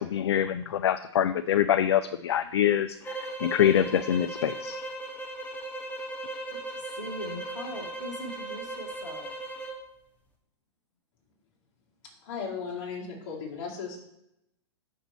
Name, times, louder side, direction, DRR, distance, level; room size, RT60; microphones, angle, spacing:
voice 1, 0.0-4.8, left 10 dB, 65° left, 13 dB, 0.4 m, -25 dB
sound 1, 3.0-9.8, right 2 dB, 10° left, 1.3 m, -37 dB
voice 2, 6.7-9.3, equal, 90° left, 4 dB, 1.1 m, -40 dB
voice 3, 12.2-14.1, left 5 dB, 50° left, -3 dB, 2.9 m, -36 dB
6.5 x 5.9 x 4.4 m, 0.82 s
figure-of-eight pair, 105°, 15 cm